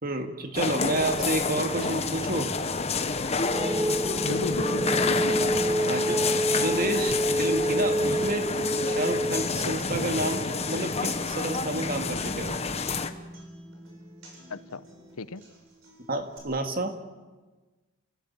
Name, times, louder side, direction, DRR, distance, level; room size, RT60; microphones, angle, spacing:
voice 1, 0.0-2.5 5.8-6.2 6.5-8.5 8.9-12.6 16.1-16.9, right 1 dB, 40° right, 6 dB, 2.1 m, -30 dB
sound 1, 0.5-13.1, left 4 dB, 30° left, 1.1 m, -29 dB
sound 2, 3.4-14.5, equal, 15° right, 0.9 m, -30 dB
voice 2, 4.2-5.4 14.5-14.8 15.2-15.4, left 3 dB, 85° left, 15 dB, 0.9 m, -35 dB
Human voice / Acoustic guitar, 8.4-16.4, equal, 60° right, 7.7 m, -54 dB
30.0 x 16.5 x 8.8 m, 1.3 s
head